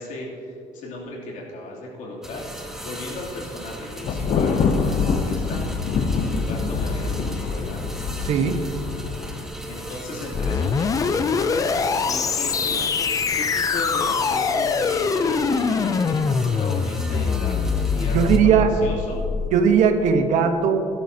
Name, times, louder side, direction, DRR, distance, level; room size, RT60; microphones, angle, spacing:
voice 1, 0.0-7.9 9.7-12.8 13.3-19.2, left 2 dB, 75° left, -4 dB, 2.9 m, -36 dB
sound 1, 2.2-18.4, equal, 5° right, 1.0 m, -37 dB
Thunder, 4.1-9.4, left 5 dB, 50° left, 0.8 m, -25 dB
voice 2, 8.3-8.6 18.1-18.7 19.5-20.8, right 7 dB, 70° right, 7 dB, 1.1 m, -18 dB
sound 2, 10.3-19.5, left 5 dB, 25° left, 0.4 m, -23 dB
18.0 x 11.5 x 2.8 m, 2.6 s
cardioid pair, 155°, 13 cm